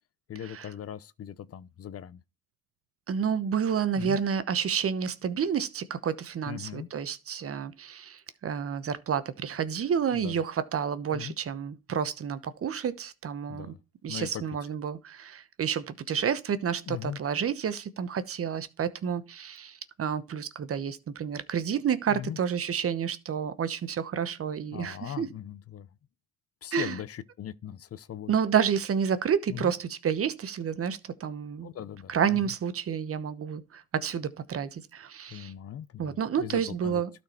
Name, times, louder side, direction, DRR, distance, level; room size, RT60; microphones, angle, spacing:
voice 1, 0.3-2.2 3.9-4.2 6.4-6.9 10.1-10.4 11.1-11.4 13.5-13.8 14.1-14.4 16.9-17.2 22.1-22.4 24.7-25.9 26.6-28.3 29.5-29.7 31.6-32.5 35.3-37.0, left 10 dB, 50° left, 0.7 m, -39 dB
voice 2, 3.1-13.7 14.0-25.3 26.7-27.0 28.3-31.7 32.1-35.5 36.0-37.1, right 7 dB, 50° right, 1.0 m, -30 dB
12.5 x 4.4 x 4.4 m
cardioid pair, 90°, 30 cm